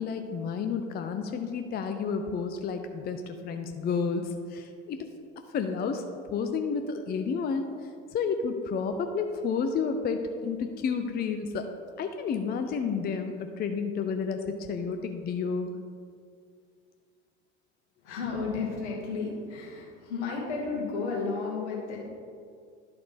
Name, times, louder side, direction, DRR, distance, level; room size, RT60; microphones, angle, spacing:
voice 1, 0.0-5.1 5.5-6.0 6.3-7.7 8.1-11.7 12.0-15.7, left 5 dB, 25° left, 7 dB, 0.5 m, -31 dB
voice 2, 18.0-22.1, left 4 dB, 70° left, -2 dB, 1.6 m, -33 dB
11.0 x 4.2 x 4.1 m, 2.2 s
figure-of-eight pair, 60°, 36 cm